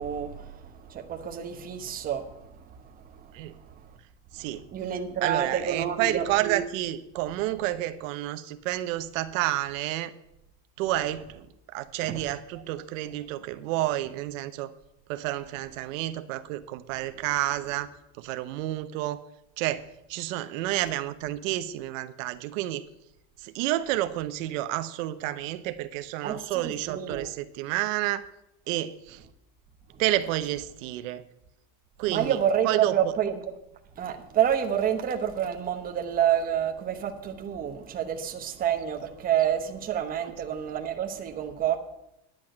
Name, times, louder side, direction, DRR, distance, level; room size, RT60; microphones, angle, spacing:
voice 1, 0.0-2.5 3.1-3.7 4.4-6.6 12.0-12.3 26.2-27.3 32.1-33.4 34.0-41.8, right 9 dB, 20° right, 1.0 m, -28 dB
voice 2, 4.3-4.6 5.2-10.1 10.8-11.5 11.7-14.7 15.1-17.9 18.2-19.2 19.6-22.8 23.4-28.2 28.7-29.2 30.0-31.2 32.0-32.4 32.6-32.9, right 15 dB, 85° right, 0.9 m, -30 dB
10.5 x 6.0 x 8.8 m
cardioid pair, 170°, 38 cm